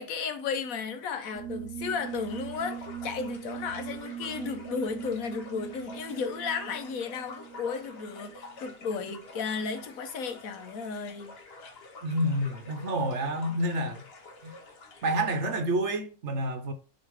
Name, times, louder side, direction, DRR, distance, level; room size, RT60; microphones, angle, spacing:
voice 1, 0.0-11.3, left 5 dB, 75° left, 1.2 m, -34 dB
sound 1, 1.3-8.8, right 9 dB, 75° right, 1.2 m, -41 dB
sound 2, 2.0-15.6, left 3 dB, 45° left, 1.1 m, -48 dB
voice 2, 12.0-14.0 14.4-14.5 15.0-16.7, right 1 dB, 55° right, 1.2 m, -28 dB
6.6 x 3.1 x 4.8 m
omnidirectional pair, 1.5 m